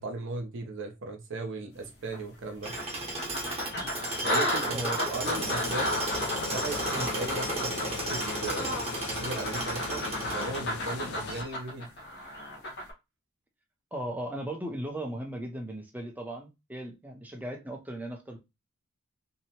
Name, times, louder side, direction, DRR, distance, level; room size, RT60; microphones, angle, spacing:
voice 1, 0.0-2.7 4.2-6.0 6.5-8.8 9.1-11.9, right 2 dB, 55° right, 0.7 m, -37 dB
sound 1, 2.1-2.2 2.8-12.9, left 1 dB, 50° left, 0.8 m, -33 dB
Tools, 2.6-10.9, right 2 dB, 30° right, 0.9 m, -35 dB
voice 2, 4.7-5.2 6.9-7.1 13.9-18.4, right 1 dB, 10° right, 0.5 m, -37 dB
sound 2, 5.2-11.4, left 6 dB, 75° left, 0.4 m, -39 dB
2.7 x 2.1 x 2.8 m
head